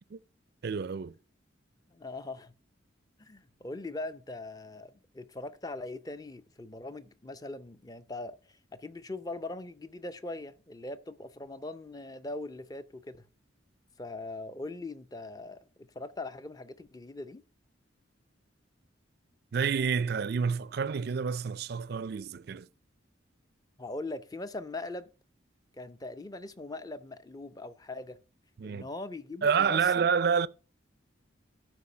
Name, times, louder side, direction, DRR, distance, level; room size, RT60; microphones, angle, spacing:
voice 1, 0.6-1.1 19.5-22.7 28.6-28.9 29.4-30.5, right 6 dB, 50° right, 0.4 m, -28 dB
voice 2, 1.9-2.5 3.2-13.3 14.0-17.4 23.8-25.1 25.8-28.2 28.6-30.1, left 2 dB, 20° left, 0.5 m, -41 dB
12.5 x 5.0 x 5.5 m
head